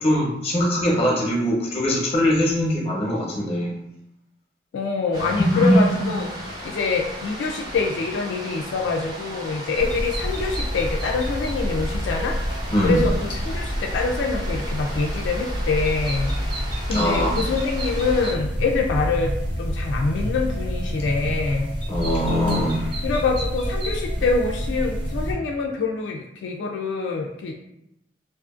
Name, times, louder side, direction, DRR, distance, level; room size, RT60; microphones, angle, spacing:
voice 1, 0.0-3.7 5.4-5.8 6.1-6.2 12.7-13.0 16.9-17.4 21.9-23.0, equal, 35° left, -4 dB, 0.8 m, -21 dB
voice 2, 4.7-6.3 6.6-12.4 12.8-16.3 16.9-19.3 19.6-21.7 23.0-27.5, left 4 dB, 90° left, 1 dB, 0.3 m, -25 dB
sound 1, 5.1-18.3, equal, 55° right, 1.2 m, -36 dB
sound 2, 9.8-25.3, equal, 30° right, 0.6 m, -28 dB
2.5 x 2.4 x 2.4 m, 0.82 s
head